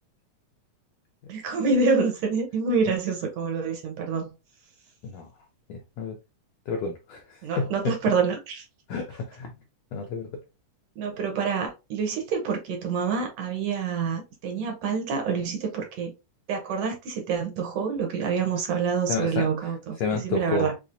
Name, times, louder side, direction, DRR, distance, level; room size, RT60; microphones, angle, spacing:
voice 1, 1.3-4.3 7.4-8.6 11.0-16.1 16.5-20.0 20.2-20.7, right 5 dB, 70° right, 1.6 m, -27 dB
voice 2, 5.7-6.2 6.7-7.9 8.9-9.5 9.9-10.3 19.1-19.5 20.0-20.7, left 4 dB, 90° left, 1.4 m, -30 dB
5.8 x 2.0 x 2.4 m
omnidirectional pair, 3.7 m